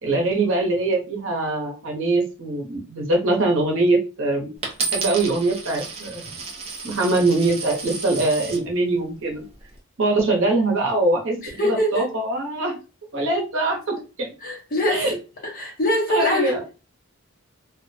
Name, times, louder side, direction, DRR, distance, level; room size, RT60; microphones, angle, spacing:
voice 1, 0.0-4.5 4.9-6.4 6.8-9.4 10.0-11.4 11.6-12.8 13.1-14.3 14.8-15.1 16.1-16.6, right 2 dB, 65° right, 0.9 m, -22 dB
Coin (dropping), 4.6-8.6 9.3-9.8, right 4 dB, 30° right, 0.6 m, -32 dB
voice 2, 11.4-12.1 14.4-15.1 15.4-16.7, left 1 dB, 45° left, 0.9 m, -23 dB
2.4 x 2.2 x 2.6 m
head